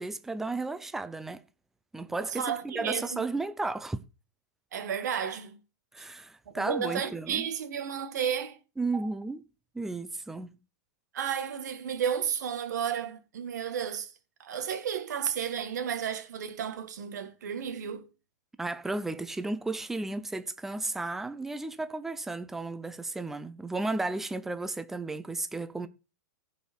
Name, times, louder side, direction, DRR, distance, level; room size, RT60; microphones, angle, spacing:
voice 1, 0.0-1.5 1.9-4.0 5.9-7.5 8.8-9.4 9.7-10.6 18.6-25.9, right 3 dB, 5° right, 0.5 m, -34 dB
voice 2, 2.3-3.2 4.7-5.6 6.5-8.6 11.1-14.1 14.4-18.1, right 8 dB, 80° right, 1.9 m, -32 dB
15.5 x 5.3 x 4.5 m
supercardioid pair, 165°, 9 cm